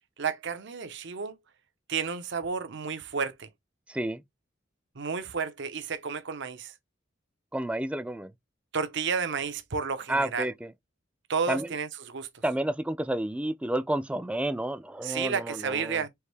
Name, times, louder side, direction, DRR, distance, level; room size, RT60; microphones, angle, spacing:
voice 1, 0.2-1.4 1.9-3.5 5.0-6.7 8.7-10.5 11.3-12.3 15.0-16.1, right 5 dB, 65° right, 0.8 m, -31 dB
voice 2, 3.9-4.2 7.5-8.3 10.1-10.7 11.5-11.7 12.4-16.0, right 1 dB, 5° right, 0.3 m, -30 dB
4.6 x 2.6 x 3.3 m
head